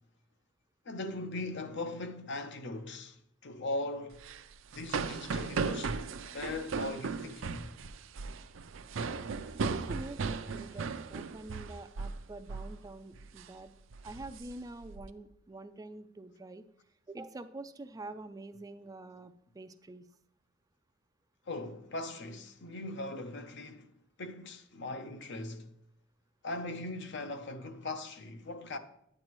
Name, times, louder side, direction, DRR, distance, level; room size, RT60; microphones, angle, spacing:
voice 1, 0.8-4.2 4.7-7.7 21.5-23.9 24.2-25.7 26.4-28.8, left 2 dB, 60° left, 0.8 m, -39 dB
sound 1, 4.1-12.2 12.5-12.8 13.1-13.5 13.9-15.0, right 5 dB, 70° right, 0.5 m, -37 dB
voice 2, 9.5-13.7 14.0-16.7 17.1-20.1, right 2 dB, 20° right, 0.3 m, -46 dB
9.6 x 8.7 x 3.0 m
head